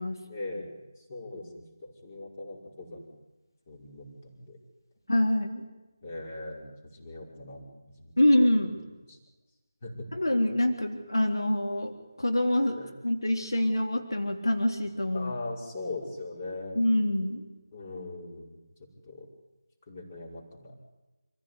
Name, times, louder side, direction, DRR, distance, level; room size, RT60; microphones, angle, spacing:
voice 1, 0.2-3.1 3.7-4.6 6.0-7.7 8.0-8.1 9.1-9.2 9.8-10.1 12.8-12.9 15.1-16.8 17.7-19.3 19.9-20.7, left 2 dB, 25° left, -2 dB, 5.4 m, -40 dB
voice 2, 5.1-5.6 8.2-8.8 10.1-15.3 16.8-17.4, left 1 dB, 75° left, 3 dB, 3.5 m, -26 dB
27.5 x 16.0 x 9.7 m, 1.1 s
figure-of-eight pair, 160°, 2 cm